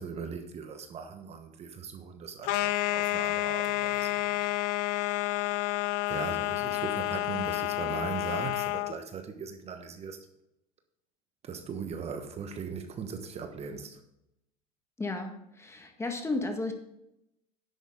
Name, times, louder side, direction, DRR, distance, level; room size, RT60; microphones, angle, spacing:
voice 1, 0.0-4.5 6.1-10.2 11.4-14.0, right 6 dB, 35° right, 6 dB, 1.2 m, -39 dB
sound 1, 2.4-9.0, left 17 dB, 60° left, 0.5 m, -30 dB
voice 2, 15.0-16.7, left 2 dB, 15° left, 5 dB, 1.6 m, -33 dB
10.5 x 8.1 x 3.7 m, 0.83 s
hypercardioid pair, 100°, 19 cm